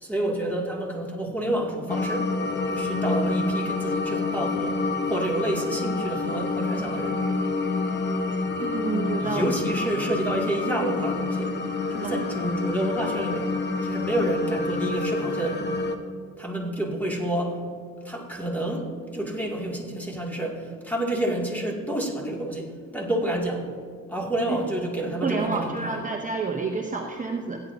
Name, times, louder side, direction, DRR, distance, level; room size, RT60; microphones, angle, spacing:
voice 1, 0.0-2.3 2.7-4.8 5.1-7.2 9.2-11.5 11.9-13.5 13.8-15.7 16.4-17.6 18.0-23.7 24.1-26.0, right 1 dB, 5° left, -2 dB, 2.3 m, -29 dB
sound 1, 1.9-16.0, left 3 dB, 35° left, 1.1 m, -28 dB
voice 2, 8.6-9.5 12.0-12.3 24.5-24.6 25.2-27.6, right 4 dB, 25° right, 1 dB, 0.9 m, -29 dB
16.5 x 9.4 x 2.7 m, 2.2 s
cardioid pair, 90°, 30 cm